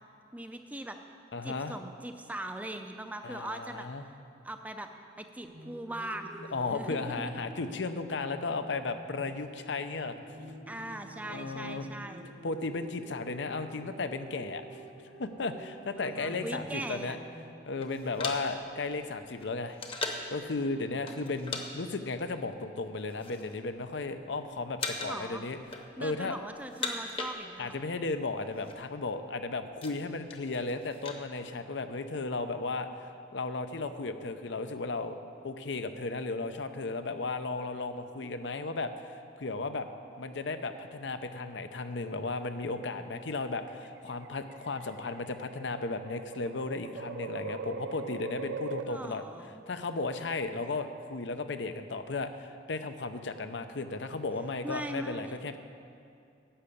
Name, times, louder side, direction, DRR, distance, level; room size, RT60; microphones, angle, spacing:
voice 1, 0.3-1.0 1.4-3.9 4.4-4.9 5.2-6.4 6.7-7.4 10.7-12.3 16.0-17.2 25.0-25.5 26.0-27.8 48.8-49.6 54.6-55.3, right 1 dB, 10° right, 6 dB, 0.5 m, -40 dB
voice 2, 1.3-1.8 3.2-4.1 6.5-10.1 11.3-11.9 12.4-14.8 15.2-17.2 17.7-25.6 26.0-26.4 27.6-35.2 35.4-39.9 40.2-49.2 49.7-55.6, left 3 dB, 70° left, 9 dB, 0.6 m, -35 dB
sound 1, 5.4-17.4, right 1 dB, 85° right, 3.2 m, -49 dB
sound 2, 17.8-20.4 21.1-21.7 21.9-22.1 22.8-23.6 23.9-24.3 24.8-25.3 25.6-26.2 26.6-27.9 28.1-28.2 28.4-28.8 29.3-31.2, left 3 dB, 30° left, 0.9 m, -39 dB
sound 3, 40.2-41.1 42.3-42.7 43.6-48.8, right 4 dB, 70° right, 0.5 m, -41 dB
11.5 x 6.8 x 8.4 m, 2.5 s
head